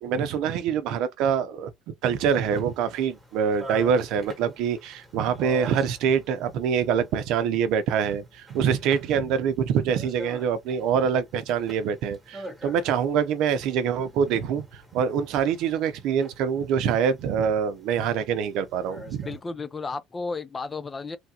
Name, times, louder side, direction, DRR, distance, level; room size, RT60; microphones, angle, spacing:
voice 1, 0.0-19.3, right 7 dB, 65° right, 0.6 m, -25 dB
sound 1, 2.1-19.4, right 1 dB, 10° right, 1.2 m, -46 dB
voice 2, 19.3-21.2, left 4 dB, 20° left, 0.4 m, -33 dB
3.3 x 2.4 x 2.8 m
cardioid pair, 145°, 0 cm